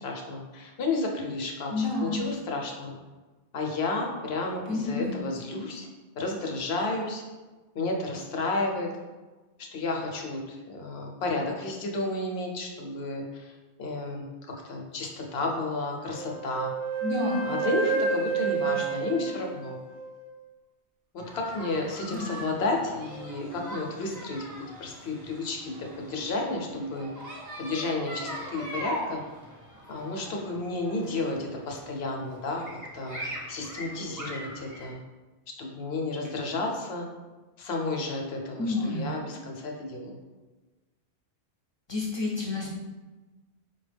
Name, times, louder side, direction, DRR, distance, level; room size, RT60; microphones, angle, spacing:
voice 1, 0.0-3.0 3.5-5.9 6.2-7.2 7.7-8.9 9.7-16.7 17.4-19.8 21.1-27.3 27.6-29.2 29.9-32.6 32.9-33.2 33.5-35.0 35.6-37.1 37.6-40.2, left 2 dB, 70° left, 1 dB, 0.9 m, -32 dB
voice 2, 1.7-2.2 4.7-5.2 17.0-17.5 18.6-18.8 22.0-22.4 38.6-39.1 41.9-42.7, left 3 dB, 35° left, -4 dB, 0.5 m, -30 dB
Wind instrument woodwind instrument, 16.1-20.3, right 6 dB, 60° right, 0.7 m, -30 dB
sound 1, 21.2-34.9, right 1 dB, 20° right, 0.7 m, -41 dB
4.5 x 2.2 x 3.3 m, 1.2 s
omnidirectional pair, 1.1 m